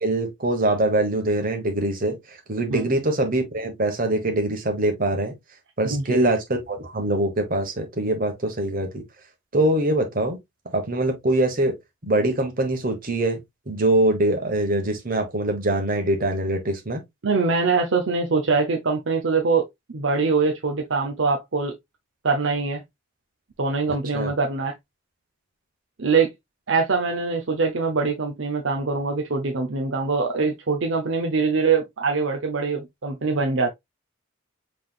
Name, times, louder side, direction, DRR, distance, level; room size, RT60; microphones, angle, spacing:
voice 1, 0.0-5.3 5.8-9.0 9.5-10.4 10.7-11.8 12.0-13.4 13.7-17.0 24.1-24.3, right 1 dB, 45° right, 1.3 m, -23 dB
voice 2, 5.9-6.3 17.2-19.7 19.9-21.7 22.2-22.8 23.6-24.7 26.0-26.3 26.7-33.7, right 4 dB, 65° right, 0.7 m, -23 dB
5.7 x 3.5 x 2.4 m
head